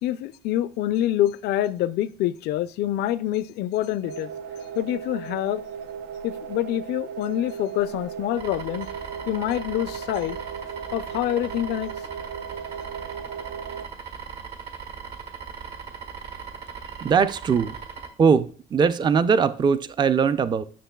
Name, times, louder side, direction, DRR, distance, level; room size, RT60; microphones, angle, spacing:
voice 1, 0.0-4.3 4.8-5.6 6.2-8.9 9.3-10.4 10.9-11.9, left 13 dB, 75° left, 0.4 m, -26 dB
sound 1, 4.0-13.9, right 7 dB, 85° right, 0.5 m, -36 dB
sound 2, 8.4-18.1, right 6 dB, 65° right, 1.6 m, -39 dB
voice 2, 17.0-17.8 18.2-20.6, right 6 dB, 25° right, 0.4 m, -21 dB
10.0 x 6.5 x 2.3 m
cardioid pair, 110°, 17 cm